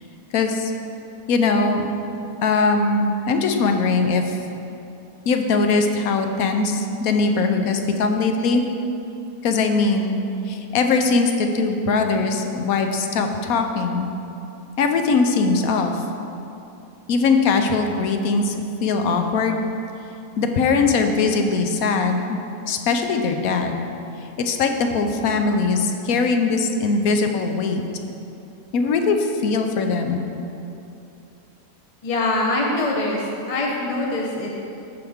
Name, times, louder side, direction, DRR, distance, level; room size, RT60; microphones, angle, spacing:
voice 1, 0.3-0.7 1.3-1.9 2.4-4.2 5.3-8.7 9.4-10.2 10.5-14.1 14.8-16.0 17.1-18.5 18.8-19.6 20.4-22.4 22.7-23.8 24.4-27.8 28.7-29.2 29.4-30.2, left 4 dB, 80° left, 5 dB, 1.1 m, -21 dB
voice 2, 32.0-34.6, left 2 dB, 30° left, -2 dB, 0.7 m, -23 dB
14.0 x 4.9 x 3.6 m, 2.8 s
omnidirectional pair, 1.5 m